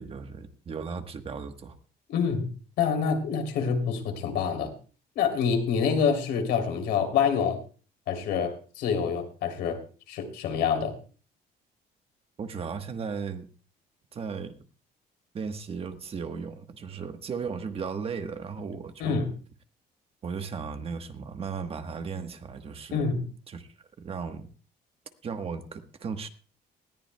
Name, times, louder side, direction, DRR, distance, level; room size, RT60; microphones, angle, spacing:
voice 1, 0.0-1.8 12.4-13.5 14.1-14.6 15.3-19.2 20.2-23.0 23.5-23.7 24.0-24.5 25.2-26.3, right 5 dB, 35° right, 8 dB, 1.2 m, -36 dB
voice 2, 2.1-2.5 2.8-4.7 5.1-7.6 8.1-9.8 10.1-10.9 19.0-19.3 22.9-23.3, left 6 dB, 80° left, 5 dB, 3.1 m, -26 dB
19.5 x 14.0 x 2.2 m, 0.38 s
cardioid pair, 135°, 17 cm